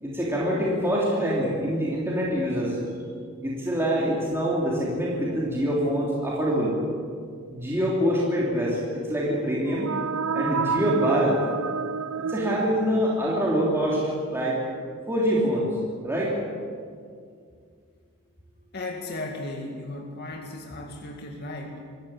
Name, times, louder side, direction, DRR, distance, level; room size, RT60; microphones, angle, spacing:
voice 1, 0.0-2.8 3.4-6.8 7.5-9.9 10.3-11.4 12.3-14.0 14.3-14.6 15.1-15.8 16.0-16.4, equal, 10° right, -5 dB, 3.4 m, -25 dB
sound 1, 9.5-13.4, right 6 dB, 75° right, 0.5 m, -30 dB
voice 2, 18.7-21.9, left 2 dB, 50° left, 1 dB, 2.1 m, -36 dB
24.5 x 14.5 x 8.8 m, 2.2 s
head